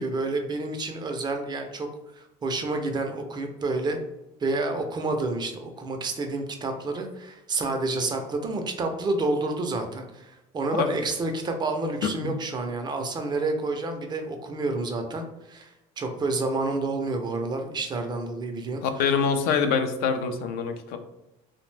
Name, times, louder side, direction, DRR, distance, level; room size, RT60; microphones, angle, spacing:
voice 1, 0.0-1.9 2.2-4.0 4.4-15.7 16.0-19.1, right 2 dB, 25° right, 5 dB, 0.4 m, -29 dB
voice 2, 19.0-21.0, left 6 dB, 75° left, 8 dB, 0.4 m, -25 dB
2.5 x 2.0 x 3.1 m, 0.93 s
supercardioid pair, 105°, 16 cm